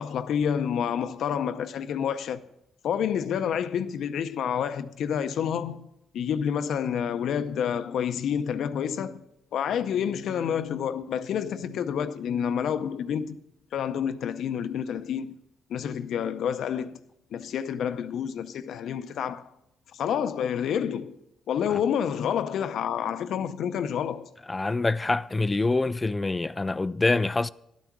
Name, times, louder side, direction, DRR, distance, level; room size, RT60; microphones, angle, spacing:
voice 1, 0.0-2.4 2.8-5.8 6.1-9.2 9.5-13.4 13.7-15.3 15.7-17.0 17.3-19.5 19.9-21.2 21.5-24.3, left 8 dB, 75° left, 0.6 m, -28 dB
voice 2, 24.5-27.5, left 3 dB, 20° left, 0.3 m, -25 dB
11.5 x 9.2 x 6.0 m
cardioid pair, 90°, 0 cm